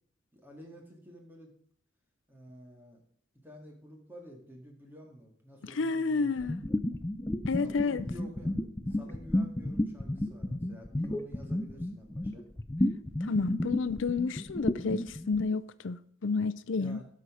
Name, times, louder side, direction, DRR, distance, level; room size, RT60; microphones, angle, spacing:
voice 1, 0.3-1.5 2.3-3.0 3.4-6.5 7.5-8.6 8.9-12.4 16.7-17.1, equal, 10° right, 2.0 m, -50 dB
voice 2, 5.8-6.6 7.5-8.1 13.3-17.0, left 4 dB, 65° left, 0.5 m, -30 dB
sound 1, 6.4-15.5, left 1 dB, 15° left, 0.5 m, -32 dB
11.0 x 6.4 x 5.0 m
head